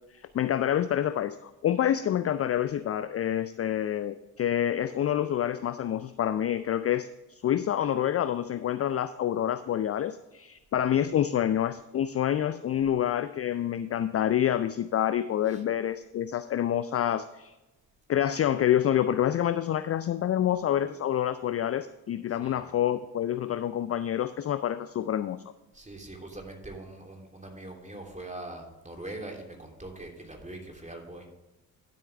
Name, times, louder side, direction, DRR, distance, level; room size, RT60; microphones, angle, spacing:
voice 1, 0.1-17.5 18.1-25.4, left 10 dB, 30° left, 13 dB, 0.5 m, -27 dB
voice 2, 22.3-22.6 25.7-31.3, right 2 dB, 15° right, 2 dB, 3.1 m, -42 dB
12.0 x 7.9 x 3.4 m, 1.0 s
figure-of-eight pair, 40°, 48 cm